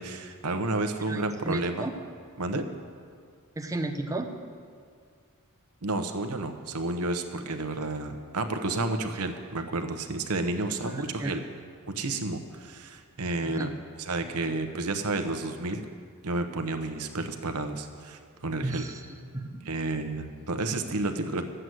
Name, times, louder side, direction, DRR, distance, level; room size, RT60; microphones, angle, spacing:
voice 1, 0.0-1.9 2.4-2.7 5.8-11.4 11.9-13.7 14.0-15.8 16.2-18.8 19.6-21.4, right 2 dB, 85° right, 7 dB, 0.9 m, -31 dB
voice 2, 1.1-1.9 3.6-4.3 10.9-11.4 13.4-13.7 18.6-19.0 19.3-19.6, right 2 dB, 15° right, 5 dB, 0.7 m, -33 dB
11.0 x 7.8 x 7.8 m, 2.1 s
head